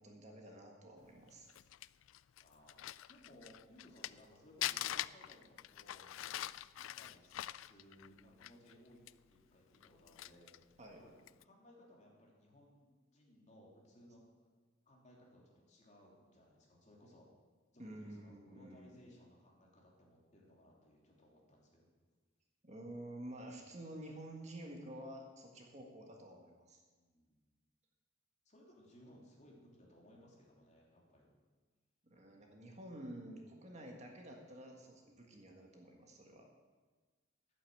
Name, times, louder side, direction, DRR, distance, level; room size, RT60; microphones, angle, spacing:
voice 1, 0.0-1.5 10.8-11.0 17.8-19.0 22.6-26.8 32.0-36.5, right 1 dB, 35° right, 1 dB, 1.7 m, -50 dB
Crumpling crinkling, 1.3-4.3 4.6-8.7 9.1-9.2 9.7-10.6 11.2-11.4, left 13 dB, 80° left, 0.3 m, -43 dB
voice 2, 2.4-2.8 3.1-6.5 6.7-9.0 9.3-10.7 10.9-14.5 14.8-17.3 17.7-21.9 26.9-27.6 28.4-31.3, equal, 35° left, -2 dB, 3.0 m, -62 dB
11.5 x 9.0 x 7.7 m, 1.4 s
head